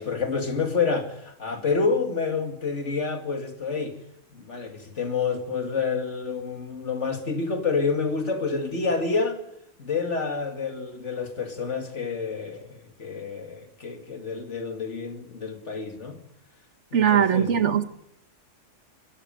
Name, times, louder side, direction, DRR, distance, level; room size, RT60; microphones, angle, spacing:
voice 1, 0.0-4.0 4.3-9.4 9.8-16.2 16.9-17.5, left 4 dB, 65° left, 2.7 m, -28 dB
voice 2, 16.9-17.8, right 8 dB, 65° right, 1.5 m, -20 dB
22.0 x 13.0 x 9.1 m
omnidirectional pair, 1.3 m